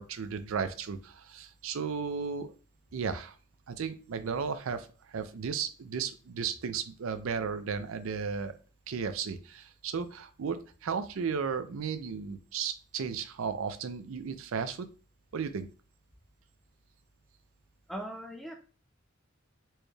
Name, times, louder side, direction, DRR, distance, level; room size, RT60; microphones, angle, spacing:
voice 1, 0.0-2.5 2.9-3.4 3.7-8.6 8.9-14.9 15.3-15.7, right 6 dB, 75° right, 10 dB, 0.4 m, -34 dB
voice 2, 17.9-18.5, equal, ahead, 2 dB, 0.3 m, -39 dB
4.3 x 3.2 x 2.3 m, 0.36 s
head